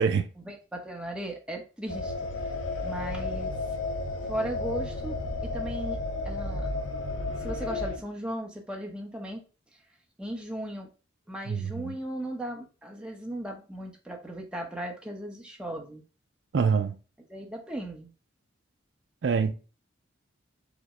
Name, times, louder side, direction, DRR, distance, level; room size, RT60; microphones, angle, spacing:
voice 1, 0.4-2.1 2.8-3.5 4.3-6.0 6.2-6.7 7.4-9.4 10.2-10.9 11.3-16.0 17.3-18.1, right 1 dB, 5° right, 0.8 m, -37 dB
sound 1, 1.9-8.0, left 2 dB, 85° left, 0.8 m, -32 dB
voice 2, 11.5-12.0 16.5-17.0 19.2-19.5, right 6 dB, 65° right, 0.4 m, -25 dB
5.1 x 2.1 x 4.7 m
head